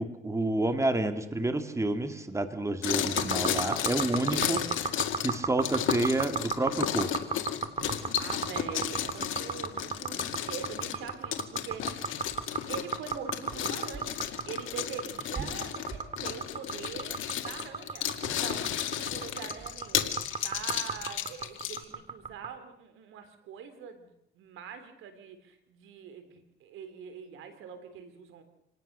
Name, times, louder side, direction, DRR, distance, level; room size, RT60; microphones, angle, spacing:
voice 1, 0.0-4.6 5.2-7.1, right 2 dB, 15° right, 8 dB, 2.2 m, -29 dB
sound 1, 2.8-21.8, left 11 dB, 80° left, 2.2 m, -33 dB
sound 2, 3.2-22.5, right 5 dB, 30° right, 2.3 m, -34 dB
voice 2, 4.3-4.8 8.2-12.1 12.7-20.1 20.4-28.4, right 7 dB, 90° right, 9 dB, 3.5 m, -43 dB
27.5 x 18.5 x 6.8 m, 0.77 s
cardioid pair, 90°, 20 cm